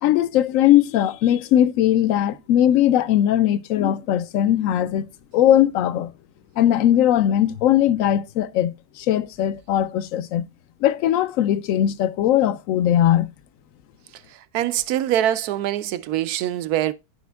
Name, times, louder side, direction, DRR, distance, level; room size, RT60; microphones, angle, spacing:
voice 1, 0.0-5.1 5.3-6.1 6.6-10.4 10.8-13.3, left 11 dB, 70° left, 0.9 m, -19 dB
voice 2, 14.5-16.9, right 12 dB, 85° right, 1.1 m, -23 dB
14.0 x 5.1 x 2.2 m
omnidirectional pair, 1.6 m